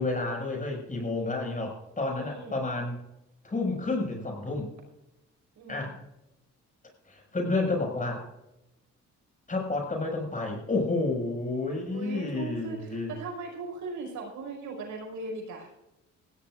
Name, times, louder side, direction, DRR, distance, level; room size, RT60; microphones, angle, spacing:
voice 1, 0.0-3.0 3.4-4.7 5.7-5.9 7.1-8.3 9.5-13.1, left 3 dB, 25° left, 0 dB, 6.2 m, -30 dB
voice 2, 2.0-2.6 5.6-6.0 11.9-15.7, right 3 dB, 80° right, 1 dB, 5.7 m, -39 dB
17.5 x 16.5 x 2.6 m, 0.89 s
cardioid pair, 90°, 30 cm